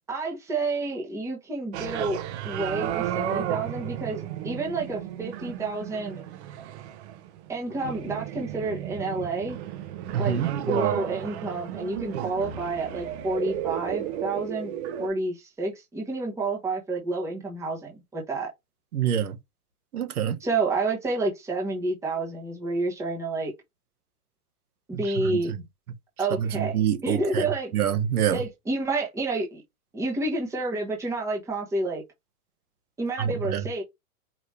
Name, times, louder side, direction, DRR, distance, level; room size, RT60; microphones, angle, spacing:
voice 1, 0.1-2.2 2.4-6.2 7.5-9.6 10.2-10.4 10.7-14.7 15.0-18.5 20.4-23.5 24.9-25.5 26.2-27.7 28.3-29.6 29.9-32.0 33.0-33.8, right 3 dB, 5° right, 1.2 m, -29 dB
sound 1, 1.7-15.1, right 11 dB, 45° right, 1.0 m, -33 dB
voice 2, 10.1-10.5 18.9-19.4 19.9-20.4 24.9-25.4 26.4-27.5 27.7-28.4 33.2-33.7, right 9 dB, 70° right, 1.3 m, -26 dB
4.9 x 3.0 x 3.4 m
hypercardioid pair, 145°, 45 cm